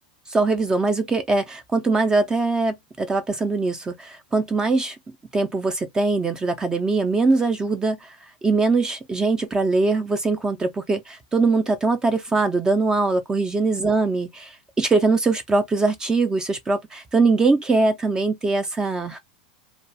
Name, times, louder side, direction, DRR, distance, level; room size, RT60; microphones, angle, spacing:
voice 1, 0.3-5.0 5.3-8.2 8.4-19.2, right 3 dB, 15° right, 0.4 m, -22 dB
2.3 x 2.3 x 2.6 m
supercardioid pair, 130°, 5 cm